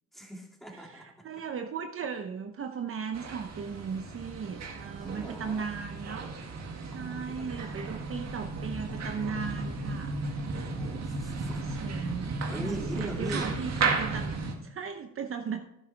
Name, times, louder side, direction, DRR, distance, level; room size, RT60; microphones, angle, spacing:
voice 1, 0.1-1.3 5.0-5.7 6.9-7.8 10.7-11.7 12.5-13.5, equal, ahead, 0 dB, 2.4 m, -41 dB
voice 2, 0.7-6.3 6.8-10.2 11.3-12.3 12.6-15.6, right 6 dB, 45° right, 6 dB, 0.8 m, -37 dB
sound 1, 3.1-14.6, right 3 dB, 60° right, 2.0 m, -34 dB
11.5 x 10.0 x 3.4 m, 0.84 s
cardioid pair, 90°, 30 cm